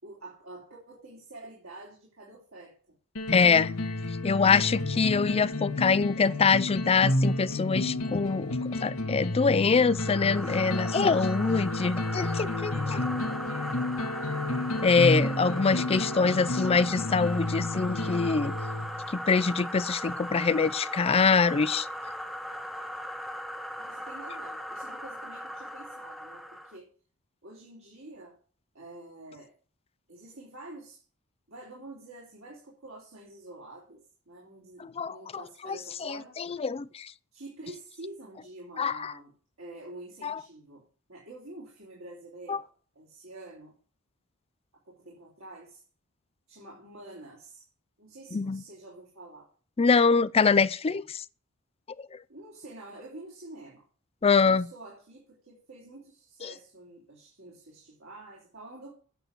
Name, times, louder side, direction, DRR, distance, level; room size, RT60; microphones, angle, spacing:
voice 1, 0.0-2.9 23.8-26.9 27.4-28.3 28.7-29.5 30.1-31.0 31.5-36.4 37.3-39.3 39.6-40.8 41.1-42.7 42.9-43.7 44.9-45.8 46.5-47.7 48.0-49.5 52.3-53.8 54.2-58.9, right 2 dB, 70° right, 3.2 m, -47 dB
sound 1, 3.2-19.1, left 2 dB, 75° left, 1.4 m, -31 dB
voice 2, 3.3-3.9 4.2-13.0 14.8-18.5 19.1-21.9 34.8-35.8 36.0-37.1 38.8-39.1 40.2-40.4 42.5-42.6 48.3-48.6 49.8-51.2 52.0-52.2 54.2-54.7 56.4-56.5, left 5 dB, 30° left, 0.4 m, -25 dB
sound 2, 9.8-26.8, equal, ahead, 0.8 m, -38 dB
9.1 x 6.0 x 8.0 m
head